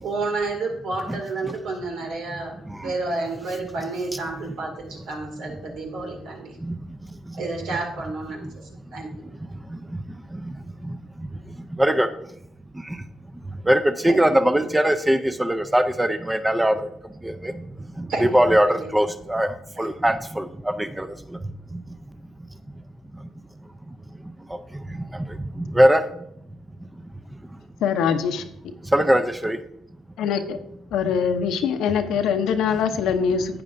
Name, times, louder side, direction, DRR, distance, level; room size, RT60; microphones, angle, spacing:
voice 1, 0.0-2.5 2.8-6.6 7.3-8.6 8.9-9.1 14.1-14.4 18.1-18.4 18.7-18.9 19.8-19.9, right 3 dB, 80° right, 1 dB, 2.3 m, -30 dB
voice 2, 13.7-16.8 17.2-17.5 18.3-19.5 19.8-20.4 20.8-21.1 25.7-26.0 28.9-29.6, equal, 10° right, 10 dB, 0.5 m, -20 dB
voice 3, 27.8-28.4 30.2-30.6 30.9-33.6, left 7 dB, 85° left, 8 dB, 0.8 m, -23 dB
12.0 x 8.6 x 2.6 m, 0.77 s
cardioid pair, 95°, 0 cm